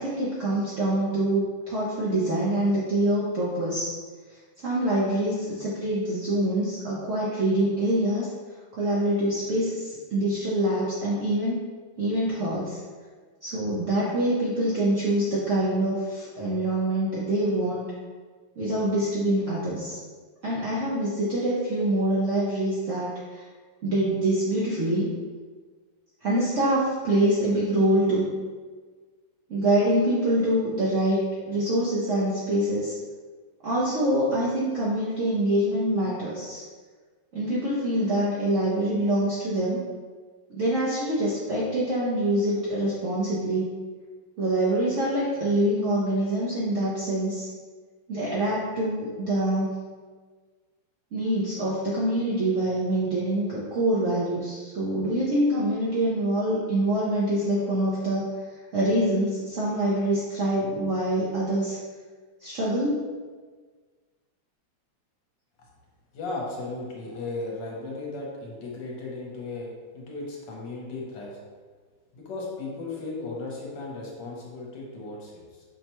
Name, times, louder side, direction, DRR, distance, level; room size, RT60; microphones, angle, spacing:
voice 1, 0.0-3.9 4.6-8.3 8.8-11.6 12.0-12.8 13.4-17.9 18.6-20.0 20.4-23.5 23.8-25.1 26.2-28.3 29.5-31.2 31.5-32.9 33.6-36.6 37.3-39.8 40.5-43.7 44.4-47.5 48.1-49.7 51.1-58.3 58.7-61.8 62.4-63.0, right 1 dB, 85° right, -7 dB, 0.6 m, -25 dB
voice 2, 66.1-71.4 72.1-75.6, left 3 dB, 65° left, -3 dB, 1.4 m, -36 dB
5.7 x 2.2 x 2.9 m, 1.5 s
omnidirectional pair, 2.2 m